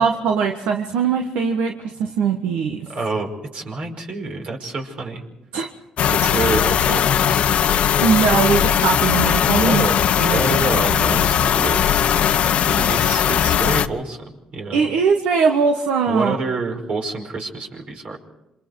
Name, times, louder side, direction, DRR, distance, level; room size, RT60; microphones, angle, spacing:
voice 1, 0.0-2.9 5.5-5.7 8.0-9.8 10.2-10.4 10.9-11.0 14.7-16.4, right 6 dB, 80° right, 4 dB, 1.5 m, -20 dB
voice 2, 2.9-5.2 6.1-7.9 9.5-12.0 12.6-14.2 14.5-14.8 16.1-18.2, right 3 dB, 60° right, 2 dB, 5.3 m, -28 dB
sound 1, 6.0-13.9, left 9 dB, 65° left, 1.0 m, -18 dB
28.0 x 26.0 x 4.8 m, 0.92 s
supercardioid pair, 55°, 2 cm